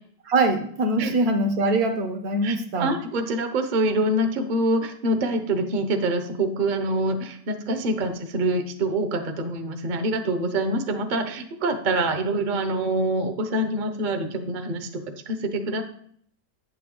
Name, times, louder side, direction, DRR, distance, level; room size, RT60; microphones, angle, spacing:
voice 1, 0.2-3.0, right 2 dB, 65° right, 7 dB, 1.3 m, -23 dB
voice 2, 2.4-15.8, right 1 dB, 40° right, 7 dB, 0.8 m, -25 dB
8.8 x 7.0 x 3.8 m, 0.62 s
omnidirectional pair, 1.8 m